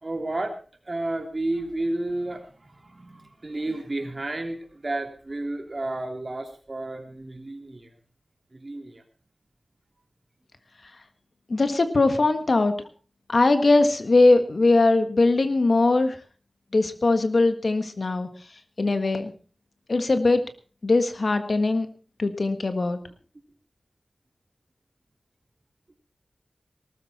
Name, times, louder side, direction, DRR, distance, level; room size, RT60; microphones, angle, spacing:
voice 1, 0.0-7.9 8.5-9.0, right 2 dB, 45° right, 4 dB, 3.0 m, -32 dB
voice 2, 11.5-12.7 13.3-16.2 16.7-18.3 18.8-19.3 19.9-20.4 20.8-21.9 22.2-23.0, left 3 dB, 65° left, 9 dB, 1.6 m, -20 dB
19.0 x 13.0 x 4.2 m, 0.37 s
wide cardioid pair, 70°, 0 cm